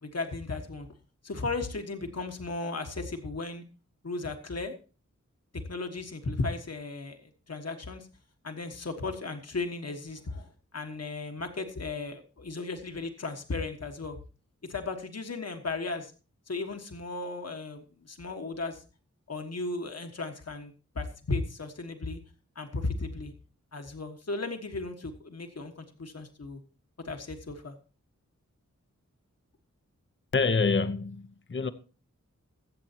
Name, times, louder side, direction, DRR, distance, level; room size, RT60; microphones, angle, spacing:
voice 1, 0.0-0.9 1.2-3.6 4.0-4.7 5.5-8.1 8.4-14.2 14.6-16.1 16.5-18.8 19.3-22.2 22.5-23.3 23.7-26.6 27.0-27.7, left 3 dB, 55° left, 1.5 m, -35 dB
voice 2, 30.3-31.7, left 4 dB, 40° left, 0.8 m, -26 dB
22.0 x 7.9 x 2.9 m
wide cardioid pair, 80°, 30 cm